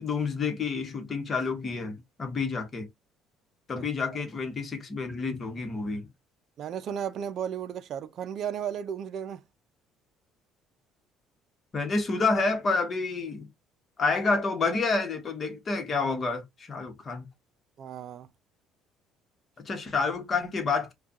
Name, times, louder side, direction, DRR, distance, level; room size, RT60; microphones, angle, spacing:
voice 1, 0.0-2.9 3.7-6.1 11.7-13.5 14.0-17.3 19.6-20.9, left 4 dB, 30° left, 1.2 m, -29 dB
voice 2, 6.6-9.4 17.8-18.3, right 8 dB, 50° right, 0.5 m, -34 dB
4.8 x 2.3 x 2.9 m
cardioid pair, 135°, 0 cm